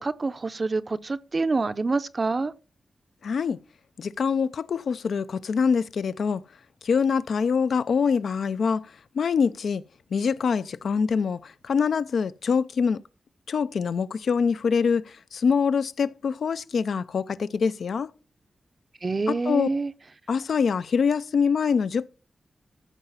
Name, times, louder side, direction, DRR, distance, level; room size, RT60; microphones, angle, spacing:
voice 1, 0.0-2.5 19.0-19.9, right 3 dB, 40° right, 0.5 m, -26 dB
voice 2, 3.2-3.6 4.0-6.4 6.8-8.9 9.2-9.8 10.1-13.0 13.5-18.1 19.3-19.7 20.3-22.1, left 6 dB, 80° left, 0.5 m, -24 dB
14.0 x 4.9 x 5.5 m
wide cardioid pair, 110°, 0 cm